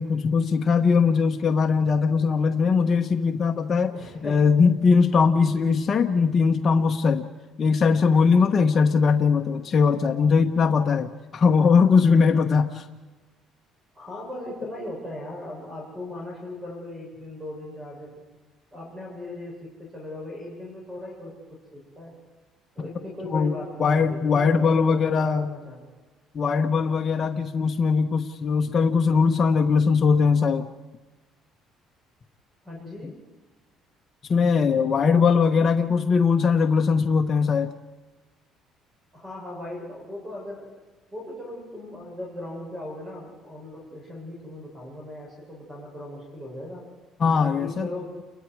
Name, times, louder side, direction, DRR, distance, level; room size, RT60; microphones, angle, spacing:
voice 1, 0.0-3.9 4.2-7.3 7.6-12.8 23.3-23.5 23.8-25.5 26.3-30.7 34.3-37.7 47.2-47.9, left 5 dB, 35° left, 3 dB, 1.1 m, -20 dB
voice 2, 3.9-4.5 13.9-18.2 18.7-22.2 22.8-25.9 32.6-33.2 39.1-40.7 41.1-46.8 47.3-48.2, left 1 dB, 15° right, -1 dB, 7.1 m, -38 dB
29.5 x 21.5 x 4.8 m, 1.2 s
cardioid pair, 135°, 0 cm